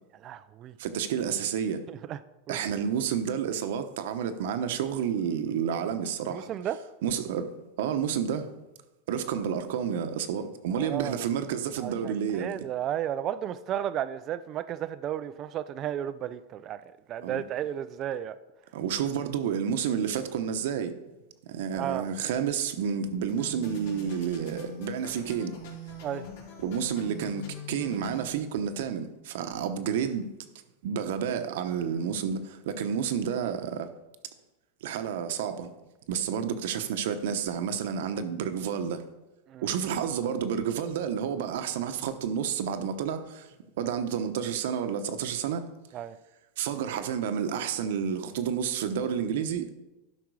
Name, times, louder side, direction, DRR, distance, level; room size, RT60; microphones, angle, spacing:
voice 1, 0.2-0.7 1.9-2.2 2.5-2.6 6.3-6.8 10.7-11.3 11.8-18.4 21.7-22.1 26.0-26.3 39.5-39.7 45.9-46.2, right 10 dB, 30° right, 0.4 m, -33 dB
voice 2, 0.8-1.8 2.5-6.5 7.0-7.5 7.8-8.5 9.1-12.6 17.2-17.4 18.7-20.9 21.5-25.6 26.6-30.3 30.8-33.9 34.8-35.7 36.1-39.0 39.6-43.5 43.8-45.7 46.6-49.7, right 8 dB, 65° right, 0.9 m, -30 dB
sound 1, 23.3-28.3, equal, 75° left, 3.9 m, -42 dB
12.0 x 5.9 x 4.8 m
supercardioid pair, 160°, 0 cm